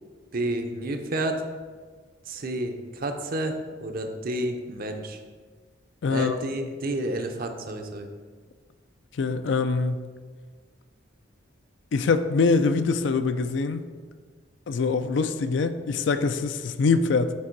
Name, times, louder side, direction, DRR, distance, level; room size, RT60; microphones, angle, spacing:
voice 1, 0.3-1.4 2.3-3.5 3.8-5.2 6.1-8.1, right 1 dB, 50° right, 5 dB, 0.6 m, -30 dB
voice 2, 6.0-6.4 9.2-10.1 11.9-13.8 14.7-17.3, left 4 dB, 65° left, 10 dB, 0.4 m, -24 dB
7.4 x 3.6 x 4.5 m, 1.5 s
head